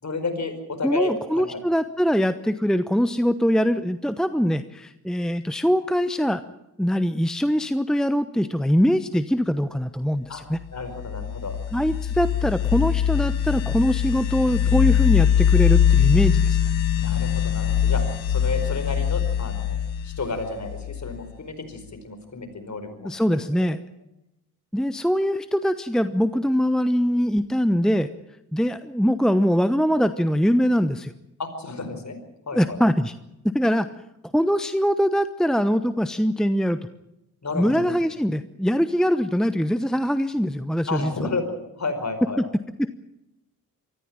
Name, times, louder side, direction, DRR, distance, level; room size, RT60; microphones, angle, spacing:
voice 1, 0.0-1.6 10.3-10.4 10.7-11.6 17.0-18.0 18.3-19.8 20.0-23.7 31.4-32.2 32.5-32.8 37.4-38.0 40.9-42.4, left 3 dB, 40° left, 8 dB, 4.9 m, -31 dB
voice 2, 0.8-6.4 6.8-10.6 11.7-16.6 23.0-23.8 24.7-28.1 28.5-31.1 32.5-33.1 33.5-33.9 34.3-36.8 37.5-41.1 42.8-42.9, equal, ahead, 12 dB, 1.0 m, -22 dB
sound 1, 10.8-21.3, left 9 dB, 80° left, 1.7 m, -22 dB
24.5 x 14.5 x 8.9 m, 0.88 s
hypercardioid pair, 40°, 44 cm